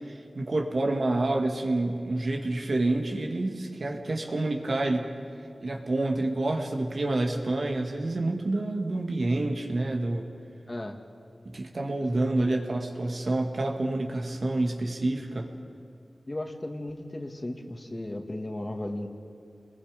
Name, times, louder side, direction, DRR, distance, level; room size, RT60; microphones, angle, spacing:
voice 1, 0.1-5.1 5.6-10.3 11.4-15.5, right 2 dB, 65° right, 2 dB, 2.3 m, -28 dB
voice 2, 12.0-12.5 16.3-19.1, left 1 dB, 35° left, 3 dB, 2.3 m, -35 dB
28.5 x 21.0 x 5.3 m, 2.5 s
cardioid pair, 45°, 0 cm